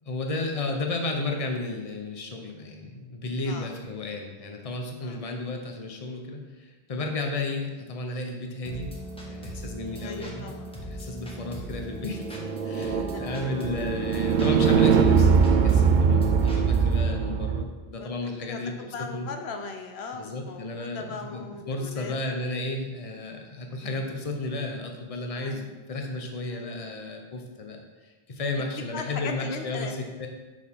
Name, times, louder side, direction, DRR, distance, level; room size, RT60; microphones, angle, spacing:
voice 1, 0.0-8.9 9.3-10.5 10.8-18.7 19.1-19.3 20.1-30.3, left 2 dB, 35° left, 3 dB, 0.9 m, -33 dB
sound 1, 8.6-17.0, right 1 dB, 5° left, 1.3 m, -39 dB
voice 2, 10.0-10.7 12.7-13.2 18.0-22.2 25.3-25.6 26.5-26.7 28.8-29.9, left 4 dB, 90° left, 5 dB, 1.0 m, -39 dB
sound 2, 12.1-17.6, right 6 dB, 60° right, 0.6 m, -22 dB
6.3 x 5.1 x 5.4 m, 1.2 s
omnidirectional pair, 1.0 m